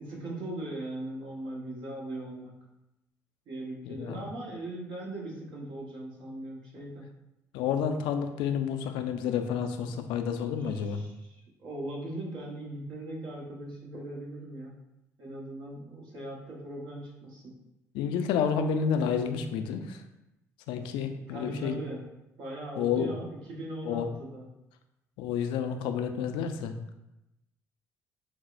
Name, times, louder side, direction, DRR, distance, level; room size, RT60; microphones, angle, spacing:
voice 1, 0.0-2.5 3.5-7.0 10.6-14.7 15.2-17.5 21.0-22.0 22.4-24.5, right 1 dB, 60° right, -3 dB, 1.1 m, -39 dB
voice 2, 3.9-4.2 7.5-11.0 17.9-20.0 20.7-21.8 22.8-23.1 23.9-24.1 25.2-26.7, left 7 dB, 70° left, 7 dB, 0.4 m, -30 dB
6.0 x 2.0 x 2.5 m, 0.90 s
hypercardioid pair, 50°, 9 cm